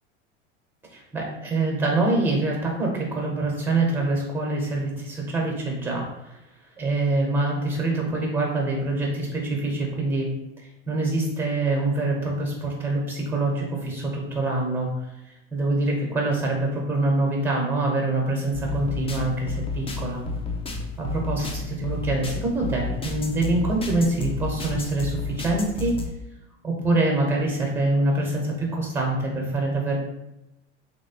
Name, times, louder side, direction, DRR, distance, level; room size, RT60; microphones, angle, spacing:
voice 1, 0.9-6.4 6.8-10.3 10.9-14.9 15.5-20.2 21.0-25.9 26.6-30.0, right 2 dB, 5° right, -1 dB, 1.1 m, -25 dB
sound 1, 18.5-26.1, left 3 dB, 15° left, 0.4 m, -31 dB
3.0 x 2.8 x 2.9 m, 0.91 s
hypercardioid pair, 85°, 36 cm